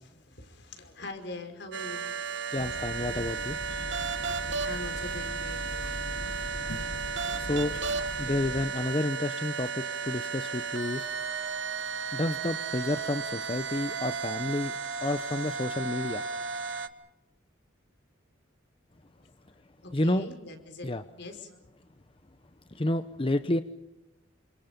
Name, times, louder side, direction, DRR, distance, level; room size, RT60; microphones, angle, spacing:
voice 1, 0.0-2.1 3.1-3.2 3.9-4.0 4.6-5.8 19.8-21.6, left 2 dB, 60° left, 6 dB, 5.2 m, -43 dB
sound 1, 1.7-16.9, right 5 dB, 70° right, 1.6 m, -34 dB
voice 2, 2.5-3.6 7.4-7.7 8.2-9.7 10.0-11.1 12.1-14.7 15.0-16.2 19.9-20.3 20.8-21.0 22.7-23.6, left 1 dB, 30° left, 10 dB, 0.8 m, -30 dB
sound 2, 2.6-8.7, left 1 dB, 85° left, 1.4 m, -40 dB
29.5 x 26.5 x 5.3 m, 0.93 s
head